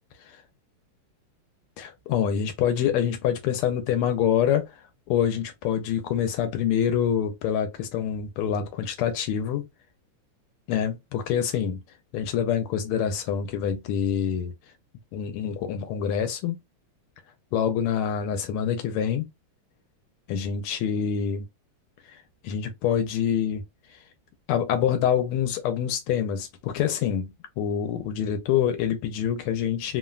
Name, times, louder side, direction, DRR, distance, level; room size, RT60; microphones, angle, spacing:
voice 1, 1.8-9.6 10.7-11.8 12.1-14.5 15.1-16.6 17.5-19.3 20.3-21.4 22.1-24.0 24.5-30.0, left 9 dB, 85° left, 1.5 m, -26 dB
3.5 x 2.1 x 2.3 m
omnidirectional pair, 2.4 m